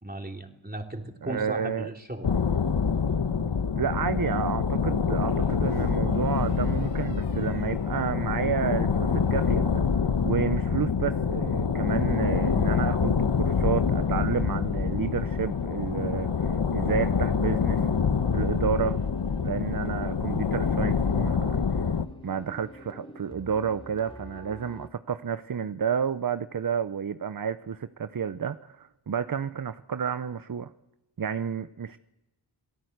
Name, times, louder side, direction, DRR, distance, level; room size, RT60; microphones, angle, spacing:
voice 1, 0.0-2.3, right 1 dB, 20° right, 3 dB, 3.3 m, -36 dB
voice 2, 1.2-1.9 3.8-9.8 10.2-17.9 18.3-19.0 19.4-21.9 22.2-30.7 31.2-32.0, right 7 dB, 45° right, 12 dB, 0.8 m, -30 dB
sound 1, 2.2-22.1, left 6 dB, 60° left, 1.3 m, -26 dB
sound 2, 2.5-3.3 5.2-8.7 9.0-9.5, left 2 dB, 85° left, 5.5 m, -53 dB
sound 3, 12.0-24.9, left 1 dB, 10° left, 2.7 m, -46 dB
28.0 x 18.0 x 8.0 m, 0.98 s
cardioid pair, 50°, 47 cm